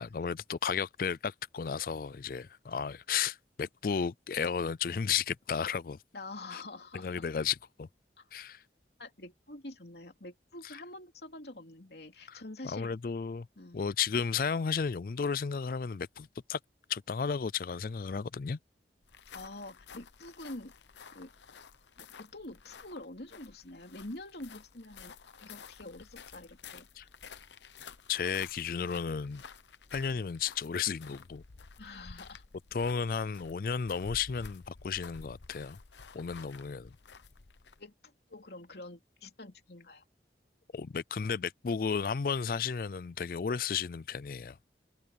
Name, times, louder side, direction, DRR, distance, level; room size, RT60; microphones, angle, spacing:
voice 1, 0.0-6.0 6.5-6.6 6.9-7.9 8.3-8.6 12.3-13.5 13.7-16.6 16.9-18.6 27.0-27.1 28.1-29.4 29.9-31.4 32.7-35.8 36.1-36.9 40.7-44.6, left 6 dB, 50° left, 0.4 m, -33 dB
voice 2, 6.1-7.3 8.2-8.3 9.0-12.9 13.6-13.8 19.3-20.7 21.1-21.3 22.0-25.1 25.4-26.9 31.8-32.4 36.4-36.5 37.8-40.0, left 2 dB, 70° left, 3.0 m, -46 dB
sound 1, 19.0-37.9, left 5 dB, 85° left, 0.9 m, -52 dB
head